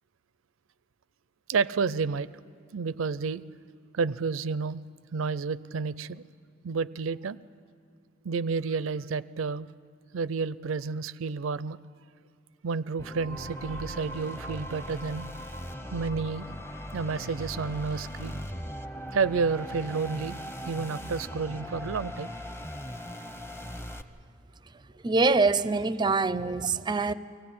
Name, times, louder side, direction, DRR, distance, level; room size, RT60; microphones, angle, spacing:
voice 1, 1.5-2.3 2.7-3.4 3.9-4.8 5.1-6.3 6.6-7.4 8.2-9.7 10.1-11.8 12.6-15.3 15.9-16.5 16.9-18.4 19.1-20.4 20.7-22.3, right 5 dB, 80° right, 0.5 m, -30 dB
sound 1, 13.0-24.0, equal, 10° left, 0.7 m, -39 dB
voice 2, 25.0-27.1, right 3 dB, 20° right, 0.4 m, -24 dB
24.0 x 17.0 x 8.6 m
head